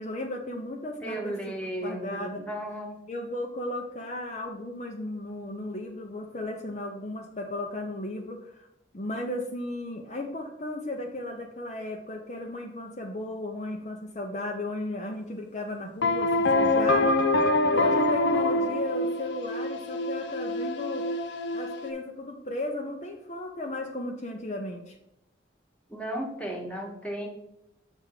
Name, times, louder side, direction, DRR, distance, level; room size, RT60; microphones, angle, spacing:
voice 1, 0.0-1.6 1.8-2.4 3.1-8.7 8.9-17.3 17.7-21.1 21.5-25.0, left 1 dB, 40° left, 2 dB, 0.6 m, -35 dB
voice 2, 1.0-2.9 25.9-27.3, right 1 dB, 5° left, 0 dB, 1.2 m, -34 dB
sound 1, 16.0-21.9, left 2 dB, 80° left, 0.7 m, -25 dB
6.7 x 3.5 x 5.7 m, 0.86 s
head